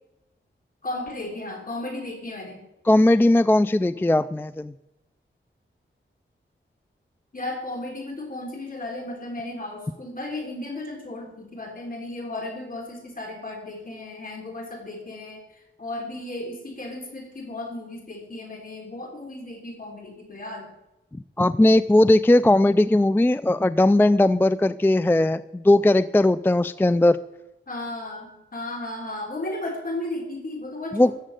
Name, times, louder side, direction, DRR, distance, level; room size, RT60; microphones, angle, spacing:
voice 1, 0.8-2.7 3.9-4.1 7.3-20.7 27.7-31.2, left 2 dB, 45° left, 1 dB, 3.5 m, -35 dB
voice 2, 2.9-4.7 21.4-27.2 30.9-31.1, left 1 dB, 10° left, 14 dB, 0.4 m, -18 dB
14.0 x 7.6 x 9.0 m, 0.95 s
wide cardioid pair, 95°, 21 cm